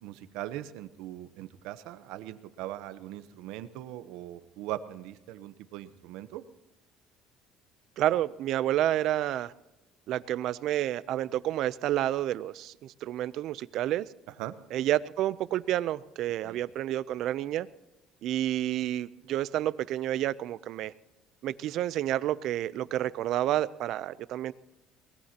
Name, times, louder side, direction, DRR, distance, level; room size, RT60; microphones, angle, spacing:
voice 1, 0.0-6.4 14.4-14.5 16.4-16.6, right 14 dB, 85° right, 0.9 m, -40 dB
voice 2, 8.0-9.5 10.1-14.1 14.7-17.7 18.2-20.9 21.4-24.5, right 13 dB, 60° right, 0.5 m, -29 dB
23.5 x 19.0 x 2.9 m
cardioid pair, 130°, 0 cm